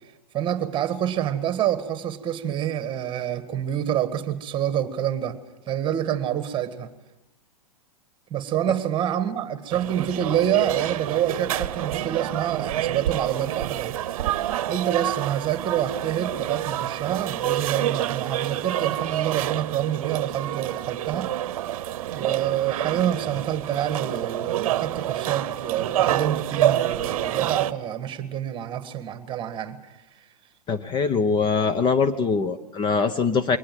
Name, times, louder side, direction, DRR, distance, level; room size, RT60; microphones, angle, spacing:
voice 1, 0.3-5.4 5.7-6.9 8.3-14.0 14.7-21.3 22.1-29.8, right 10 dB, 25° right, 10 dB, 1.7 m, -27 dB
sound 1, 9.7-27.7, right 12 dB, 60° right, 0.9 m, -28 dB
voice 2, 30.7-33.6, left 5 dB, 25° left, 11 dB, 0.9 m, -22 dB
23.0 x 18.5 x 7.6 m, 0.98 s
hypercardioid pair, 125°, 20 cm